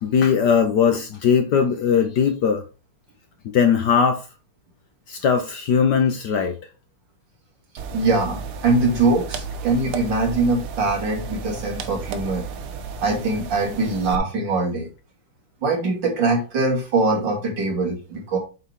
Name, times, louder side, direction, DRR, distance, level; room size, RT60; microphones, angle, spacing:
voice 1, 0.0-2.6 3.5-4.2 5.1-6.5, left 7 dB, 70° left, 1.0 m, -19 dB
sound 1, 7.8-14.2, right 6 dB, 80° right, 1.7 m, -33 dB
voice 2, 7.9-12.4 13.0-14.9 15.6-18.4, right 3 dB, 55° right, 2.7 m, -22 dB
8.0 x 3.9 x 3.6 m
omnidirectional pair, 2.4 m